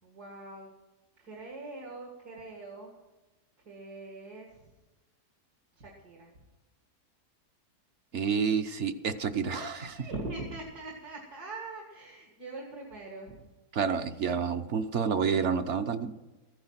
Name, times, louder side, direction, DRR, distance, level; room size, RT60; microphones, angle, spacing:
voice 1, 0.0-0.7 1.2-3.0 3.6-4.7 5.8-6.3 9.5-13.4, right 2 dB, 75° right, -1 dB, 2.6 m, -42 dB
voice 2, 8.1-9.7 13.7-16.1, right 6 dB, 55° right, 9 dB, 1.0 m, -29 dB
15.0 x 10.5 x 5.9 m, 1.1 s
omnidirectional pair, 1.7 m